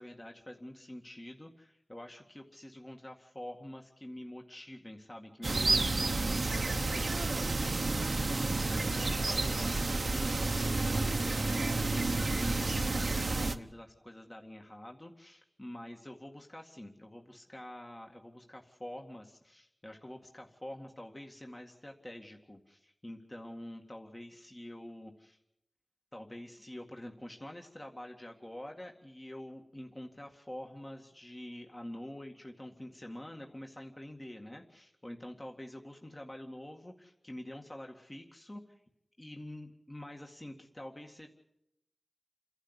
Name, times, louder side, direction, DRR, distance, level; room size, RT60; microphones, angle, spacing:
voice 1, 0.0-12.0 12.3-25.4 26.1-38.8 39.2-41.3, left 1 dB, 30° left, 2 dB, 2.0 m, -47 dB
sound 1, 5.4-13.6, right 3 dB, 70° right, 1.0 m, -30 dB
29.5 x 11.5 x 8.2 m, 0.81 s
wide cardioid pair, 50°, 0 cm